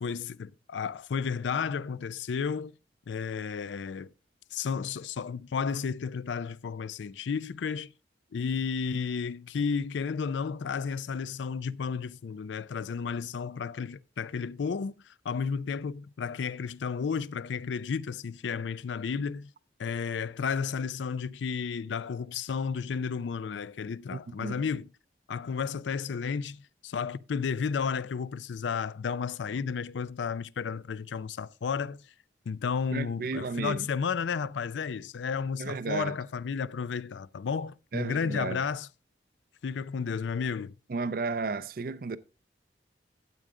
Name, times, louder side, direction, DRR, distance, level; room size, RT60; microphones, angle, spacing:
voice 1, 0.0-2.7 3.1-4.1 4.5-7.9 8.3-19.5 19.8-24.9 25.3-32.0 32.5-38.9 39.6-40.7, left 6 dB, 85° left, 0.4 m, -32 dB
voice 2, 24.1-24.7 32.9-33.9 35.6-36.2 37.9-38.6 40.9-42.2, right 4 dB, 50° right, 0.4 m, -33 dB
12.5 x 7.7 x 3.6 m
head